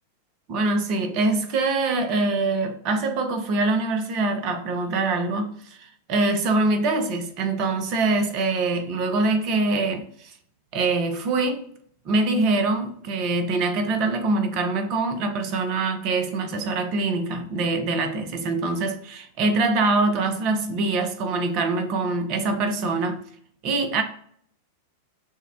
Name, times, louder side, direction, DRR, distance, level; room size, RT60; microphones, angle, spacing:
voice 1, 0.5-10.3 10.7-11.7 12.0-23.2 23.6-24.0, right 3 dB, 40° right, 0.6 m, -24 dB
6.3 x 2.2 x 2.5 m
figure-of-eight pair, 90°, 0 cm